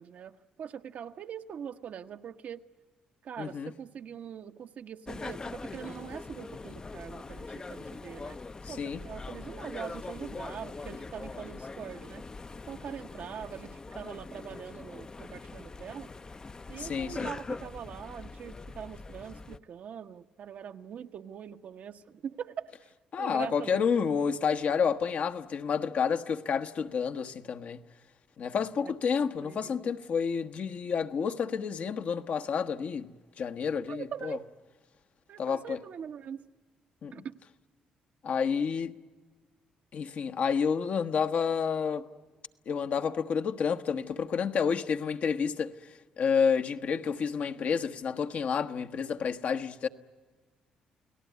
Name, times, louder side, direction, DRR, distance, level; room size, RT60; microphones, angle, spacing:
voice 1, 0.0-2.7 3.2-8.4 8.7-12.2 12.7-16.1 16.7-22.7 23.2-24.2 28.7-28.9 29.4-29.9 33.9-34.4 35.3-36.4 37.1-37.4 47.5-47.7, right 8 dB, 65° right, 1.1 m, -42 dB
voice 2, 3.4-3.7 8.6-9.0 16.8-17.3 23.1-27.8 28.4-34.4 35.4-35.8 37.0-37.2 38.2-38.9 39.9-42.1 42.7-45.7 46.2-49.9, left 6 dB, 60° left, 1.2 m, -30 dB
sound 1, 5.1-19.6, left 3 dB, 30° left, 0.7 m, -42 dB
29.0 x 18.5 x 9.4 m
supercardioid pair, 70°, 3 cm